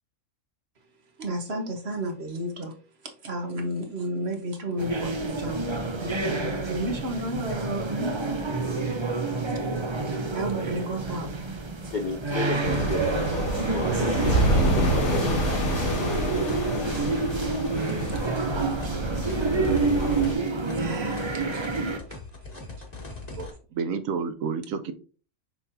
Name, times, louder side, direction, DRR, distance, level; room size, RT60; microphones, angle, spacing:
voice 1, 1.2-2.7 3.0-8.2 9.5-9.6 10.0-11.5 20.7-21.7, right 1 dB, 50° right, 1.4 m, -33 dB
sound 1, 4.8-22.0, right 3 dB, 35° right, 0.5 m, -28 dB
voice 2, 11.9-15.3 15.9-16.0, left 3 dB, 50° left, 0.6 m, -33 dB
sound 2, 12.6-20.3, right 1 dB, 70° left, 2.3 m, -27 dB
sound 3, 16.0-23.5, left 3 dB, 30° left, 1.4 m, -41 dB
voice 3, 23.4-24.9, right 5 dB, 75° right, 1.0 m, -30 dB
6.2 x 5.6 x 2.7 m
omnidirectional pair, 1.5 m